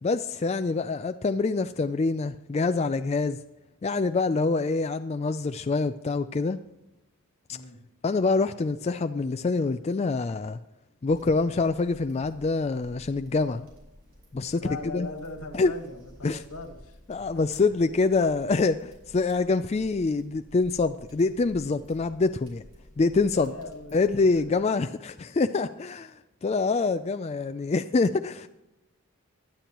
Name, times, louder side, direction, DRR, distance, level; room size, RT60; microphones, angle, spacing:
voice 1, 0.0-3.4 3.8-6.6 7.5-7.6 8.0-10.6 11.0-13.7 14.3-15.1 15.5-15.7 16.2-16.4 17.1-22.6 23.0-23.5 23.9-28.5, left 3 dB, 30° left, 9 dB, 0.3 m, -25 dB
sound 1, 11.1-24.5, equal, 80° right, 5.4 m, -52 dB
voice 2, 14.5-17.0 17.3-17.7 23.3-24.6, left 2 dB, 80° left, 4 dB, 1.9 m, -40 dB
19.5 x 11.5 x 3.0 m, 0.99 s
head